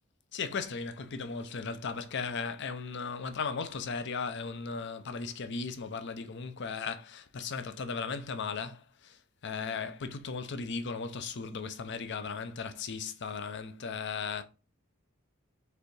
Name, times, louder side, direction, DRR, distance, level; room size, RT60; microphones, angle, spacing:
voice 1, 0.3-14.4, left 5 dB, 55° left, 0.6 m, -36 dB
4.8 x 3.4 x 3.2 m
head